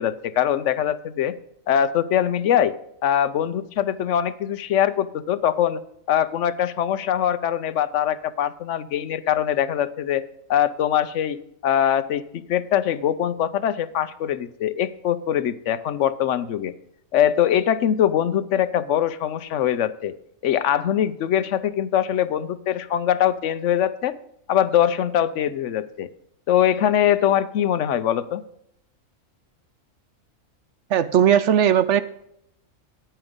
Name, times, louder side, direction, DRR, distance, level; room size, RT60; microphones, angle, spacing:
voice 1, 0.0-1.4 1.7-2.7 3.0-5.8 6.1-10.2 10.5-16.7 17.1-20.1 20.4-24.2 24.5-26.1 26.5-28.4, left 10 dB, 65° left, 13 dB, 0.9 m, -22 dB
voice 2, 30.9-32.0, right 9 dB, 65° right, 13 dB, 0.9 m, -17 dB
9.4 x 8.9 x 5.3 m, 0.75 s
omnidirectional pair, 1.4 m